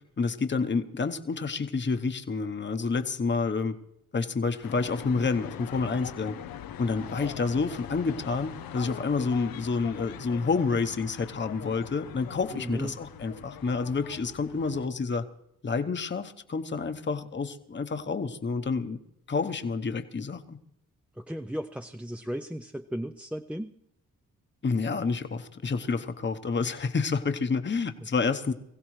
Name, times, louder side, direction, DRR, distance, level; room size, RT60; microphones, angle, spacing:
voice 1, 0.2-3.8 4.1-6.4 6.8-15.3 15.6-19.0 19.3-20.6 24.6-28.5, left 4 dB, 30° left, 8 dB, 1.0 m, -29 dB
sound 1, 4.6-14.9, left 10 dB, 80° left, 0.6 m, -42 dB
voice 2, 12.5-13.0 21.2-23.7, equal, 5° right, 5 dB, 0.5 m, -35 dB
23.0 x 16.0 x 3.2 m, 0.80 s
cardioid pair, 55°, 34 cm